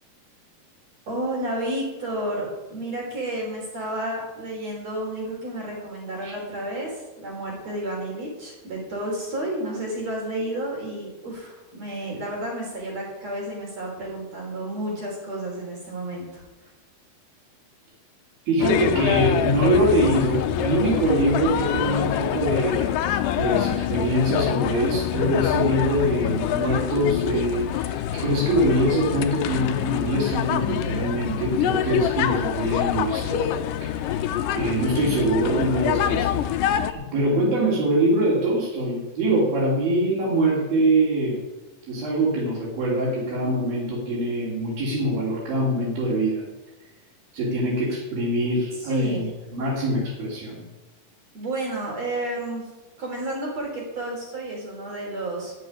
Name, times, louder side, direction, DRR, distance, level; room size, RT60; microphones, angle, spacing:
voice 1, 1.1-16.7 48.8-49.3 51.3-52.7 53.0-55.6, right 1 dB, 40° right, -1 dB, 4.6 m, -31 dB
voice 2, 18.5-23.0 23.3-33.4 33.8-36.4 37.0-41.4 41.9-46.4 47.3-50.6, right 1 dB, 65° right, -7 dB, 5.3 m, -23 dB
sound 1, 18.6-36.9, left 11 dB, 80° left, 1.9 m, -25 dB
13.5 x 7.0 x 9.9 m, 1.1 s
omnidirectional pair, 4.6 m